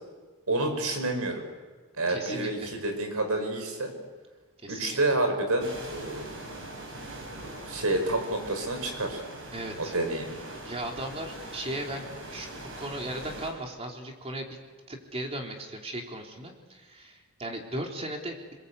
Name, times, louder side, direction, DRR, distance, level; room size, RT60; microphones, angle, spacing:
voice 1, 0.5-1.4 2.0-3.9 4.7-6.3 7.4-9.2 9.8-10.2, right 2 dB, 90° right, 6 dB, 5.5 m, -29 dB
voice 2, 2.1-2.7 4.6-5.0 9.5-9.9 10.6-14.6 14.9-18.5, right 1 dB, 30° right, 1 dB, 3.8 m, -37 dB
Waves on rocks, 5.6-13.5, right 1 dB, 65° right, 7.2 m, -42 dB
28.0 x 21.5 x 8.4 m, 1.4 s
head